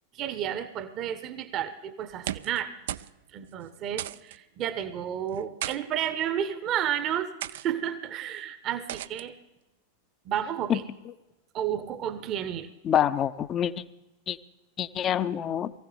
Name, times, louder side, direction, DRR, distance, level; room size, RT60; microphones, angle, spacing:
voice 1, 0.1-2.7 3.3-9.3 10.2-10.8 11.5-12.7, right 10 dB, 35° right, 12 dB, 0.9 m, -31 dB
sound 1, 2.1-2.6 2.9-3.1 3.4-3.5 4.0-4.4 5.3-5.8 6.5-6.8 7.4-7.7 8.9-9.2, right 12 dB, 55° right, 0.4 m, -35 dB
voice 2, 12.8-13.8 14.3-14.4 14.8-15.7, left 10 dB, 30° left, 14 dB, 0.6 m, -26 dB
22.0 x 15.5 x 3.4 m, 1.0 s
figure-of-eight pair, 90°, 0 cm